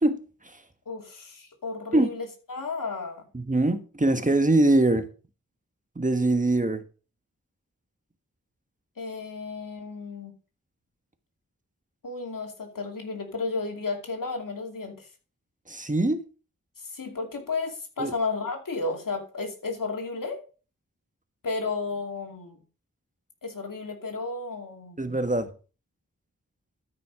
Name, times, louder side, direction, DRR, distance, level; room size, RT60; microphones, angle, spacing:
voice 1, 0.9-3.2 9.0-10.3 12.0-15.1 16.8-20.4 21.4-22.6 23.4-25.0, left 3 dB, 90° left, 2.6 m, -33 dB
voice 2, 3.3-5.1 5.9-6.8 15.7-16.2 18.0-18.1 25.0-25.5, right 2 dB, 25° right, 1.4 m, -23 dB
13.0 x 5.9 x 4.9 m
wide cardioid pair, 60°, 32 cm